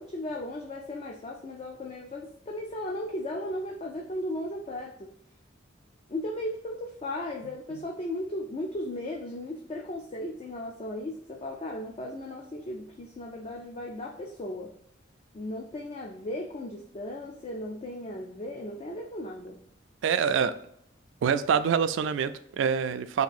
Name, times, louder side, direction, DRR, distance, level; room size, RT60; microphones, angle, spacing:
voice 1, 0.0-5.1 6.1-14.7 15.3-19.6, left 1 dB, 30° left, 1 dB, 0.4 m, -36 dB
voice 2, 20.0-20.5 21.2-23.2, right 7 dB, 75° right, 12 dB, 0.3 m, -25 dB
3.6 x 2.6 x 4.0 m, 0.68 s
head